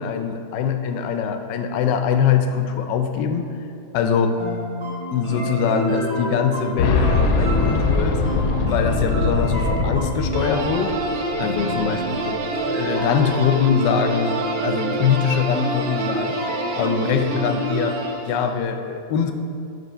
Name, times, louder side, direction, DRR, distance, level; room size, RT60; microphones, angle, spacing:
voice 1, 0.0-3.5 3.9-4.4 5.1-8.2 8.6-10.9 11.4-12.4 12.7-16.4 16.7-19.3, left 7 dB, 90° left, 6 dB, 1.2 m, -22 dB
sound 1, 4.4-18.1, right 1 dB, 30° right, 1.6 m, -29 dB
Boom, 6.8-11.5 11.8-11.9 13.0-13.1, left 4 dB, 75° left, 1.1 m, -22 dB
sound 2, 10.3-18.7, right 3 dB, 85° right, 1.2 m, -29 dB
5.4 x 4.4 x 5.4 m, 2.6 s
omnidirectional pair, 1.8 m